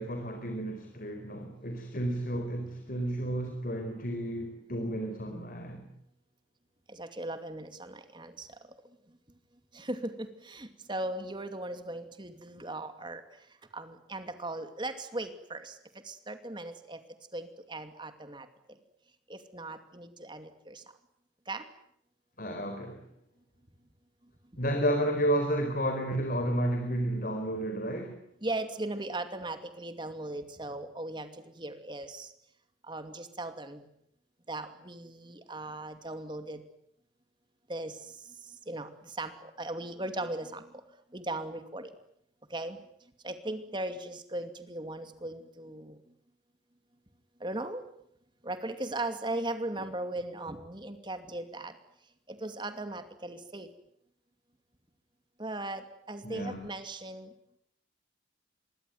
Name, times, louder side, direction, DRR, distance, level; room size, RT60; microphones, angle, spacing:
voice 1, 0.0-5.8 22.4-23.0 24.6-28.2 56.2-56.7, right 1 dB, 50° left, 4.6 m, -31 dB
voice 2, 6.9-8.5 9.7-13.2 13.7-15.8 16.0-17.0 17.3-18.5 19.3-20.8 21.5-21.7 28.4-31.3 31.6-32.3 32.9-33.8 34.5-36.6 37.7-38.0 38.7-40.6 41.1-41.9 42.5-42.8 43.2-46.0 47.4-47.8 48.4-51.7 52.3-53.7 55.4-57.3, right 2 dB, 25° right, 2.6 m, -38 dB
26.5 x 22.5 x 9.5 m
head